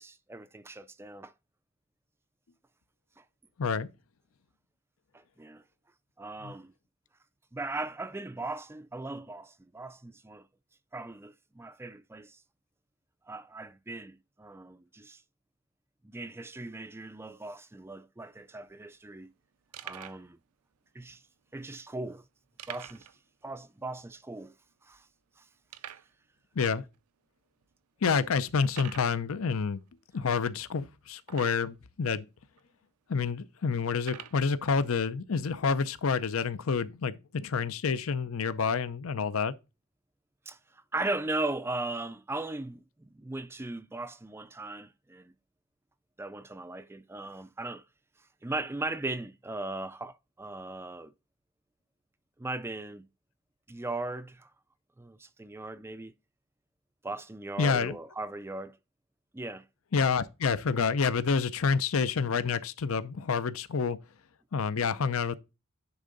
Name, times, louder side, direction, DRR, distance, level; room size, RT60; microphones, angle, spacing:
voice 1, 0.0-1.3 5.4-5.6 6.2-6.7 7.5-10.5 10.9-12.4 13.3-15.2 16.0-19.3 19.8-20.4 20.9-21.2 21.5-22.2 22.7-23.1 23.4-24.5 24.8-25.0 25.4-25.5 40.5-45.3 46.2-47.8 48.4-51.1 52.4-53.1 53.7-54.5 55.0-56.1 57.0-58.8 59.3-59.7, right 2 dB, 10° right, 0.4 m, -38 dB
sound 1, 18.3-18.4 18.5-18.7 19.2-19.3 19.7-20.3 21.0-21.1 22.6-23.2 23.5-23.6 24.0-24.1 24.7-24.8 25.7-26.1 26.9-27.0 27.6-27.7 28.7-29.1 31.2-31.8 32.6-32.7 34.0-34.4, right 11 dB, 85° right, 0.5 m, -45 dB
voice 2, 28.0-29.8 30.1-32.2 33.1-39.5 57.6-58.0 59.9-64.0 64.5-65.4, left 5 dB, 70° left, 0.6 m, -28 dB
10.0 x 3.7 x 4.0 m
head